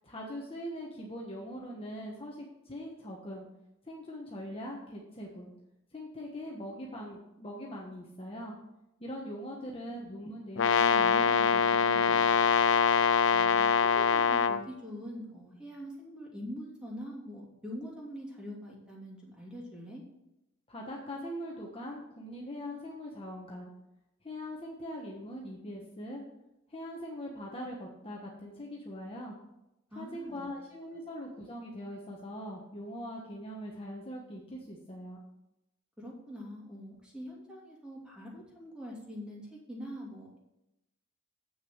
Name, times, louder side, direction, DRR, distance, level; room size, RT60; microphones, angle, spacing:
voice 1, 0.0-3.4 3.8-5.5 5.9-8.5 9.0-12.3 20.7-23.7 24.2-26.2 26.7-29.3 29.9-35.2, equal, 25° left, -1 dB, 1.2 m, -42 dB
Brass instrument, 10.6-14.6, left 6 dB, 65° left, 0.5 m, -24 dB
voice 2, 13.3-13.7 13.9-20.0 29.9-30.5 36.0-40.4, equal, 5° right, -4 dB, 2.9 m, -44 dB
8.2 x 6.3 x 7.0 m, 0.90 s
head